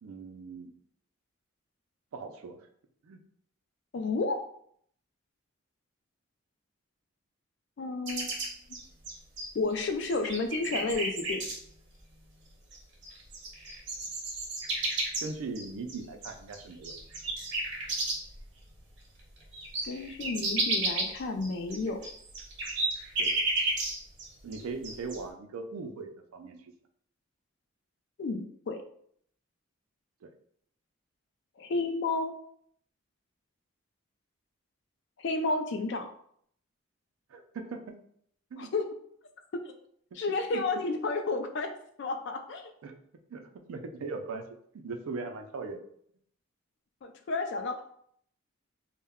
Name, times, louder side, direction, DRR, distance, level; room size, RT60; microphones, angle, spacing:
voice 1, 0.0-0.7 2.1-2.6 3.0-3.2 15.2-16.9 23.2-23.4 24.4-26.7 30.2-30.3 37.3-38.0 38.5-38.7 40.1-40.2 40.5-40.7 42.8-42.9 43.3-44.5 44.7-45.8, right 4 dB, 90° right, 5 dB, 0.4 m, -39 dB
voice 2, 3.9-4.4 7.8-8.3 8.7-8.8 9.5-11.5 19.8-22.0 28.2-28.8 31.6-32.3 35.2-36.1 38.6-38.8 40.2-41.7 42.0-42.7 47.0-47.8, left 3 dB, 55° left, 6 dB, 0.3 m, -31 dB
sound 1, 8.1-9.7 10.1-11.5 12.7-12.8 13.0-18.4 18.8-18.9 19.2-24.3 24.5-25.2, right 2 dB, 55° right, 0.7 m, -32 dB
2.2 x 2.1 x 3.4 m, 0.66 s
head